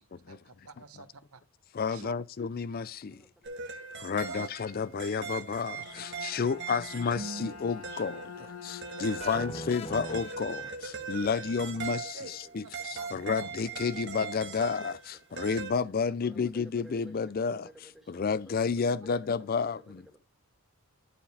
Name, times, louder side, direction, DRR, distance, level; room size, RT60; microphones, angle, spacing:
voice 1, 0.0-1.4 1.9-2.2 4.3-4.5 6.7-6.8 8.9-9.7 10.0-10.1 10.5-10.6 12.1-12.3 12.9-13.5, right 3 dB, 80° right, 1.1 m, -48 dB
voice 2, 1.7-3.2 4.0-20.1, left 5 dB, 40° left, 0.4 m, -31 dB
voice 3, 3.1-3.7 8.8-8.9 10.1-10.2 11.0-11.1 13.0-13.1 15.3-15.5 16.2-16.4 17.0-17.1 17.4-17.5, equal, ahead, 2.1 m, -56 dB
sound 1, 3.4-15.7, right 5 dB, 55° right, 1.4 m, -40 dB
Bowed string instrument, 5.6-9.9, left 5 dB, 85° left, 1.1 m, -46 dB
sound 2, 9.2-11.2, equal, 25° left, 0.8 m, -41 dB
11.0 x 4.7 x 3.4 m
head